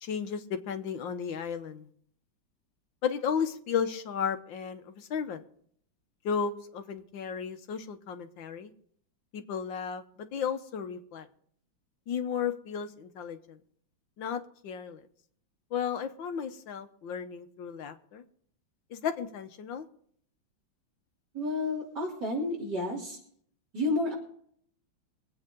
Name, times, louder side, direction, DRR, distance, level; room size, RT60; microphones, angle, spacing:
voice 1, 0.0-1.9 3.0-5.4 6.2-8.7 9.3-11.3 12.1-13.6 14.2-15.0 15.7-18.2 18.9-19.9, left 7 dB, 75° left, 8 dB, 1.7 m, -34 dB
voice 2, 21.3-23.2 23.7-24.1, left 2 dB, 60° right, -3 dB, 3.8 m, -30 dB
23.0 x 8.6 x 3.8 m, 0.63 s
omnidirectional pair, 2.1 m